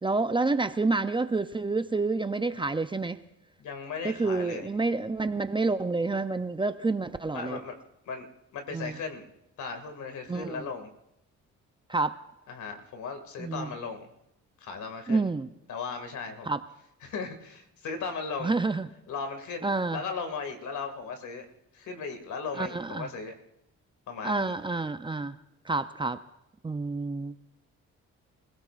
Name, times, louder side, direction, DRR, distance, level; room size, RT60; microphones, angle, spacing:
voice 1, 0.0-3.2 4.0-7.6 8.7-9.0 10.3-10.7 11.9-12.2 13.4-13.7 15.1-15.5 16.5-16.6 18.4-18.9 19.6-20.0 22.5-23.1 24.2-25.4 25.6-26.2 26.6-27.3, right 3 dB, 15° right, 10 dB, 0.6 m, -28 dB
voice 2, 3.6-4.7 7.3-7.8 8.0-8.3 8.5-9.3 9.6-10.9 12.5-14.1 14.6-15.3 15.7-16.5 17.0-18.5 19.1-21.5 21.7-23.3 24.1-24.5, left 5 dB, 75° left, 6 dB, 2.2 m, -37 dB
26.0 x 17.0 x 2.5 m, 0.84 s
cardioid pair, 90°, 30 cm